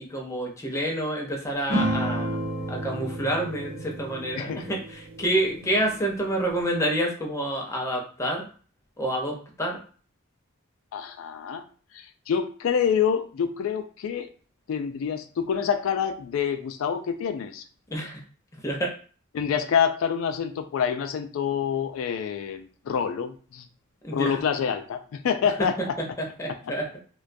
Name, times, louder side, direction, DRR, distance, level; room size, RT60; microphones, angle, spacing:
voice 1, 0.0-2.4 2.7-8.5 9.0-9.8 17.9-18.2 18.6-18.9 24.0-24.4 25.6-25.7 26.4-26.9, right 1 dB, 15° left, 0 dB, 0.5 m, -28 dB
sound 1, 1.7-6.6, right 1 dB, 85° right, 0.8 m, -32 dB
voice 2, 10.9-11.6 11.9-14.3 14.7-17.6 19.3-23.7 24.1-25.9, left 7 dB, 70° left, 9 dB, 0.3 m, -27 dB
2.2 x 2.2 x 2.5 m, 0.41 s
head